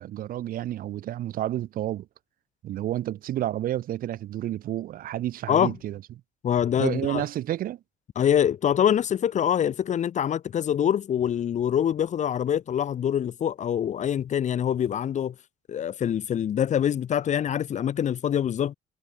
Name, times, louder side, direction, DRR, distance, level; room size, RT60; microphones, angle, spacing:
voice 1, 0.0-2.1 2.6-6.0 6.8-7.8, right 13 dB, 60° right, 0.7 m, -30 dB
voice 2, 6.4-7.2 8.2-15.3 15.7-18.7, left 9 dB, 45° left, 0.9 m, -25 dB
cardioid pair, 110°, 17 cm